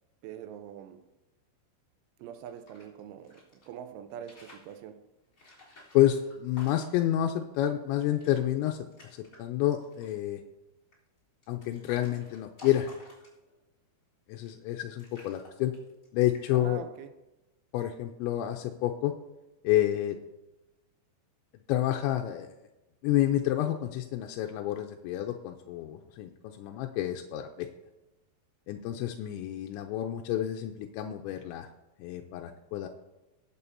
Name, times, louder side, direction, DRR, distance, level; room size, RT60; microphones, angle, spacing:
voice 1, 0.2-1.1 2.2-5.1 16.5-17.2, right 9 dB, 85° right, 3.2 m, -44 dB
sound 1, 2.4-3.7 4.1-4.8 5.3-7.2 7.5-7.6 7.9-8.4 8.7-9.4 9.7-10.2 10.9-13.6 14.3-14.7 15.0-16.1 16.3-16.7, left 2 dB, 20° left, 3.1 m, -53 dB
voice 2, 5.9-8.8 9.4-10.4 11.5-12.9 14.3-15.7 16.1-16.8 17.7-19.1 19.6-20.2 21.7-22.5 23.0-26.3 26.6-27.7 28.7-31.7 32.0-32.9, left 13 dB, 85° left, 2.9 m, -29 dB
19.5 x 8.5 x 2.8 m
omnidirectional pair, 5.5 m